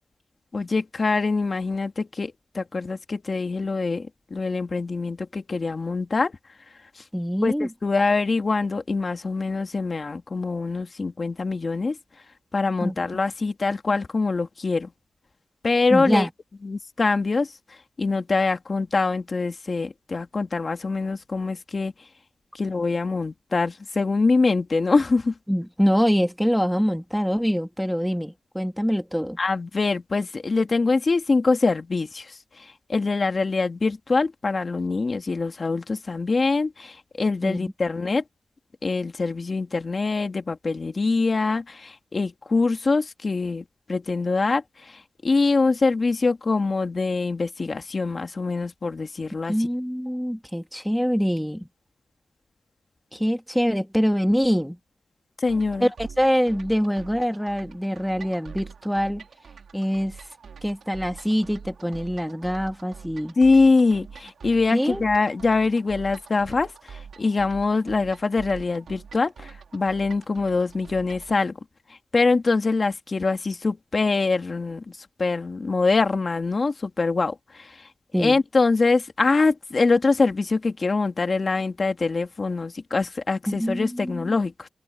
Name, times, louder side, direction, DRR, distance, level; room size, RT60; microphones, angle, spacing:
voice 1, 0.5-6.3 7.0-7.1 7.4-12.0 12.5-14.9 15.6-16.3 16.6-21.9 22.5-25.4 29.4-38.2 38.8-49.6 55.4-55.9 63.4-71.6 71.9-77.9 78.2-84.7, left 3 dB, 40° left, 1.8 m, -24 dB
voice 2, 7.1-7.7 12.8-12.9 15.9-16.3 25.5-29.4 37.4-37.7 49.5-51.7 53.1-54.8 55.8-59.2 59.7-60.2 60.6-63.3 64.7-65.0 78.1-78.4 83.5-84.2, equal, ahead, 1.6 m, -24 dB
sound 1, 55.5-71.3, right 6 dB, 85° right, 2.9 m, -44 dB
wide cardioid pair, 135°, 0 cm